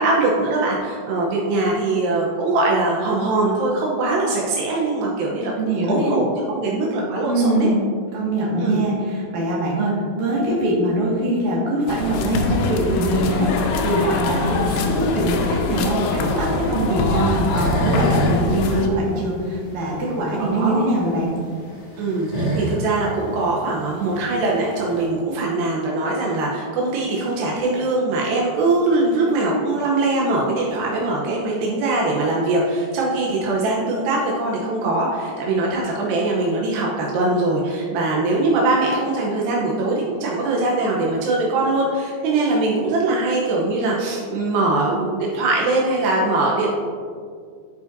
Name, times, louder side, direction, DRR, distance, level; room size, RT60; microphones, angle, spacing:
voice 1, 0.0-7.7 8.6-8.8 20.4-20.8 22.0-46.7, right 2 dB, 80° right, -3 dB, 2.1 m, -22 dB
voice 2, 5.6-6.2 7.2-7.8 8.1-21.3, right 1 dB, 50° right, -5 dB, 2.6 m, -22 dB
sound 1, 11.9-18.9, left 3 dB, 80° left, 2.7 m, -24 dB
sound 2, 14.2-25.1, right 1 dB, 50° left, 3.1 m, -28 dB
13.0 x 5.1 x 2.6 m, 2.1 s
omnidirectional pair, 5.3 m